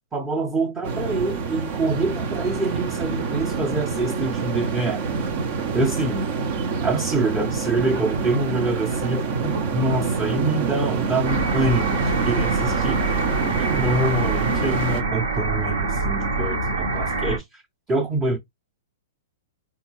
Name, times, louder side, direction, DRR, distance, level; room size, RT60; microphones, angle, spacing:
voice 1, 0.1-5.0 5.7-6.3 6.8-17.6 17.9-18.4, right 2 dB, 20° right, 0.7 m, -26 dB
sound 1, 0.8-15.0, right 5 dB, 50° right, 0.7 m, -26 dB
sound 2, 11.3-17.4, right 3 dB, 70° right, 1.0 m, -25 dB
3.7 x 2.3 x 3.0 m
hypercardioid pair, 115°, 0 cm